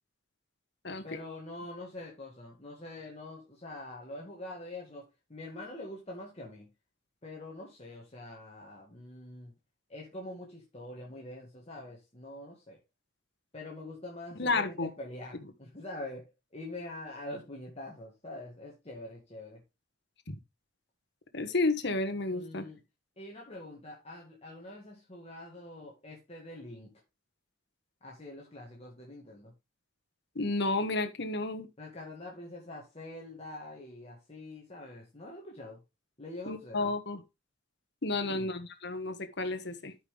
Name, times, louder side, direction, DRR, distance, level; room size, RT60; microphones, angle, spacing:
voice 1, 1.0-6.7 7.2-9.5 9.9-12.8 13.5-19.6 22.3-22.8 23.2-27.0 28.0-29.5 31.8-35.8 36.2-36.9 38.2-38.5, left 1 dB, 30° left, 1.9 m, -45 dB
voice 2, 14.4-14.9 20.3-20.4 21.3-22.6 30.3-31.7 36.5-37.2 38.0-39.9, left 2 dB, 60° left, 1.4 m, -31 dB
12.5 x 5.6 x 3.3 m
head